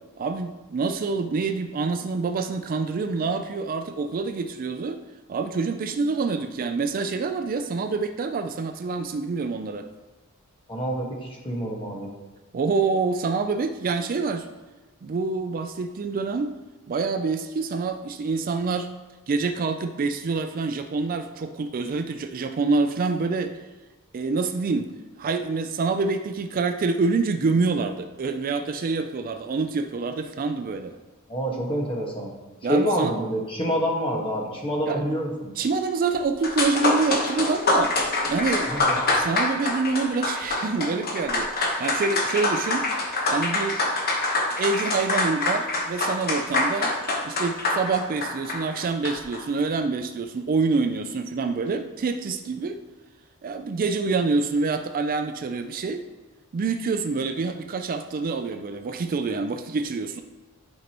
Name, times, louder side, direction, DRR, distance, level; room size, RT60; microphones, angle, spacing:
voice 1, 0.2-5.0 5.3-9.9 12.5-14.5 15.0-16.6 16.9-18.9 19.3-23.5 24.1-24.9 25.2-30.9 32.6-33.1 34.9-35.0 35.6-38.8 39.1-42.9 43.3-43.8 44.6-46.9 47.2-52.8 53.4-56.0 56.5-60.2, right 4 dB, 40° right, 7 dB, 0.4 m, -26 dB
voice 2, 10.7-12.1 31.3-32.3 32.7-35.5 38.7-39.0, equal, 25° left, -2 dB, 1.5 m, -27 dB
sound 1, 36.1-36.2 36.4-49.4, left 2 dB, 45° left, 1.2 m, -25 dB
11.5 x 5.2 x 3.0 m, 1.2 s
head